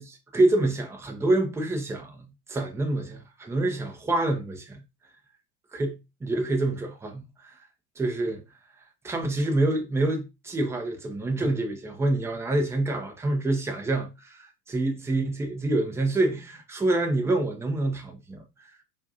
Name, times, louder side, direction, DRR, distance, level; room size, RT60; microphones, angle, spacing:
voice 1, 0.0-2.2 2.5-4.8 5.7-7.5 8.0-8.4 9.0-18.4, right 2 dB, 5° right, 0.6 m, -27 dB
4.5 x 2.4 x 2.7 m
hypercardioid pair, 90°, 48 cm